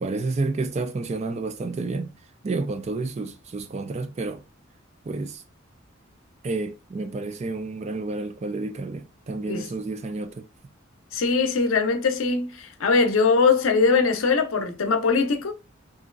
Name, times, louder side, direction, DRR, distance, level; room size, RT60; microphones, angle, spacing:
voice 1, 0.0-2.1 2.4-4.4 5.1-5.4 6.4-10.5, right 3 dB, 35° right, 0.3 m, -30 dB
voice 2, 11.1-15.5, left 4 dB, 85° left, 0.6 m, -21 dB
2.9 x 2.6 x 2.5 m
head